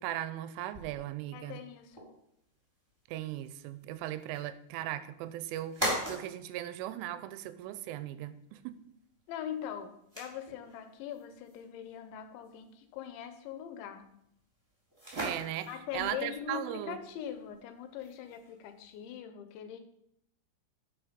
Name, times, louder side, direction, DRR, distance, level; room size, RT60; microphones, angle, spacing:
voice 1, 0.0-1.6 3.1-8.8 15.1-17.0, right 13 dB, 85° right, 13 dB, 3.1 m, -38 dB
sound 1, 0.7-19.2, equal, 5° right, 2.7 m, -44 dB
voice 2, 1.3-2.1 9.3-14.0 15.7-19.8, left 9 dB, 80° left, 9 dB, 3.0 m, -42 dB
11.0 x 6.3 x 5.1 m, 0.76 s
omnidirectional pair, 5.5 m